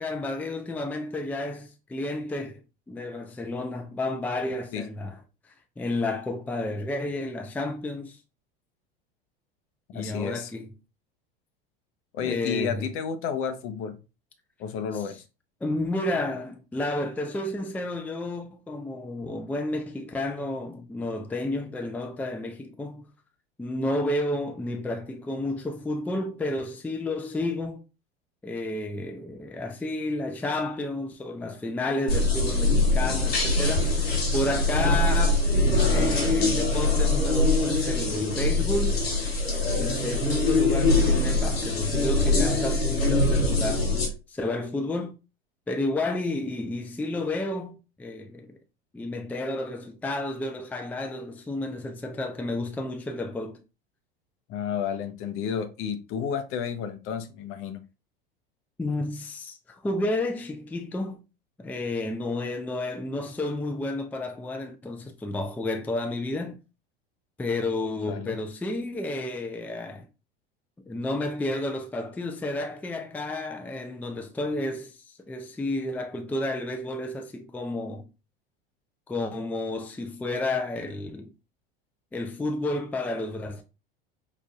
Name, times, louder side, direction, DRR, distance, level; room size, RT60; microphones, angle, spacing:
voice 1, 0.0-2.6 2.9-5.2 5.4-8.2 9.9-10.7 12.2-12.9 15.6-23.1 23.6-27.8 28.4-35.5 35.8-39.0 39.7-43.9 44.3-45.2 45.7-48.5 48.9-53.6 58.8-61.2 61.6-66.6 67.4-70.0 70.9-78.1 79.1-81.3 82.1-83.6, left 2 dB, 5° left, 0.5 m, -31 dB
voice 2, 9.9-10.5 12.1-14.0 14.6-15.2 54.5-57.8 68.1-68.4, left 7 dB, 45° left, 0.7 m, -31 dB
sound 1, 32.1-44.1, left 2 dB, 85° left, 1.2 m, -23 dB
5.0 x 2.5 x 2.3 m
hypercardioid pair, 80°, 30 cm